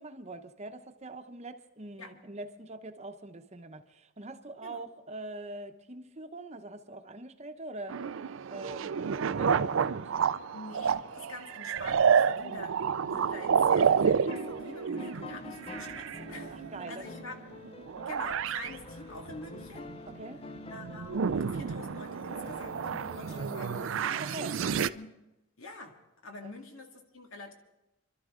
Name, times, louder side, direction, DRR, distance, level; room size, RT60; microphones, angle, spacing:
voice 1, 0.0-8.0 8.5-10.3 14.9-15.1 16.5-17.0 20.1-20.4 24.1-24.6 26.4-26.5, right 2 dB, 35° right, 0.8 m, -43 dB
sound 1, 7.9-17.2 17.6-18.7 19.3-20.3 20.7-24.9, right 7 dB, 70° right, 0.4 m, -29 dB
voice 2, 10.5-17.3 18.1-19.9 20.7-22.8 23.1-25.1 25.6-27.5, left 2 dB, 90° left, 2.1 m, -46 dB
sound 2, 10.9-23.1, equal, 50° left, 2.6 m, -59 dB
sound 3, 13.9-23.9, left 3 dB, 30° left, 0.4 m, -47 dB
26.5 x 12.5 x 3.7 m
head